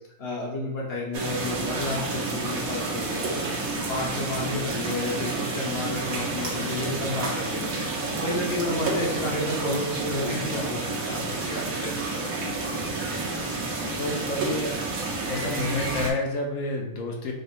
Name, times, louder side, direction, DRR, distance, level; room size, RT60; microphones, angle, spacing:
voice 1, 0.2-7.7 8.1-12.2 12.6-12.8, left 2 dB, 45° left, -3 dB, 1.3 m, -31 dB
sound 1, 1.1-16.1, right 3 dB, 75° right, 1.3 m, -30 dB
voice 2, 14.0-14.8 15.3-17.3, left 2 dB, 70° left, 1 dB, 1.0 m, -29 dB
5.0 x 2.1 x 4.5 m, 0.92 s
omnidirectional pair, 1.5 m